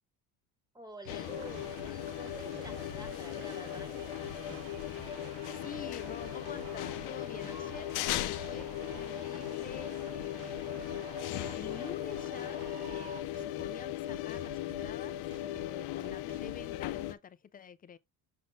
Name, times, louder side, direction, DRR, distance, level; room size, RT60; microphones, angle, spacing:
voice 1, 0.7-4.2, right 1 dB, 10° right, 1.7 m, -49 dB
sound 1, 1.0-1.2 1.5-1.9 2.3-3.1 3.5-3.9 4.2-5.1 5.5-5.8 6.2-7.1 7.4-7.8 8.2-9.0 9.4-9.8 10.1-11.0 11.4-11.7 12.1-13.0 13.3-13.7 14.1-14.9 15.3-15.7 16.0-16.6, right 3 dB, 55° right, 1.1 m, -52 dB
sound 2, 1.1-17.1, left 13 dB, 75° left, 0.7 m, -38 dB
sound 3, 1.2-13.2, right 8 dB, 80° right, 1.4 m, -50 dB
voice 2, 5.4-18.0, left 7 dB, 25° left, 0.4 m, -48 dB
6.5 x 6.1 x 2.5 m
cardioid pair, 140°, 38 cm